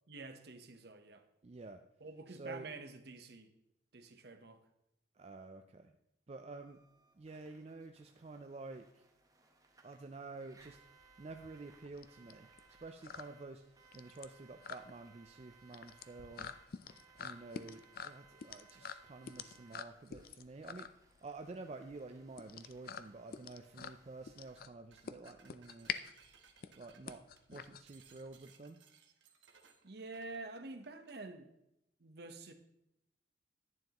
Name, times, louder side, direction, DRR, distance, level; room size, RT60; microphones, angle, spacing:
voice 1, 0.1-1.2 2.0-3.5 3.9-4.6 29.8-31.5 32.0-32.5, right 3 dB, 60° right, 7 dB, 0.9 m, -48 dB
voice 2, 1.4-1.8 2.3-2.7 5.1-5.9 6.3-6.8 7.2-9.0 9.8-10.8 11.2-12.5 12.8-13.6 13.9-16.5 17.2-20.9 21.2-25.9 26.8-27.2 27.5-28.8, right 3 dB, 35° right, 6 dB, 0.4 m, -50 dB
sound 1, 6.6-24.6, right 4 dB, 20° right, 1.0 m, -65 dB
sound 2, 10.6-28.4, left 7 dB, 50° left, 0.4 m, -48 dB
sound 3, 24.4-24.6 24.9-31.2, right 6 dB, 75° right, 1.1 m, -65 dB
11.0 x 9.3 x 3.0 m, 0.82 s
head